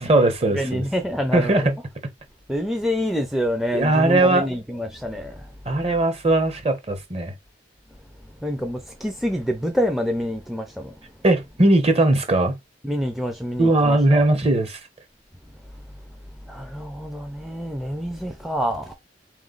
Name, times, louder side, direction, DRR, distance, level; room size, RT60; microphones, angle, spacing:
voice 1, 0.0-0.8 1.3-1.7 3.7-4.5 5.7-7.3 11.2-12.6 13.6-14.8, right 2 dB, 35° right, 0.9 m, -19 dB
voice 2, 0.5-1.7 2.5-5.5 8.4-11.1 12.8-14.3 16.4-18.9, equal, ahead, 0.5 m, -27 dB
3.8 x 3.1 x 3.9 m
head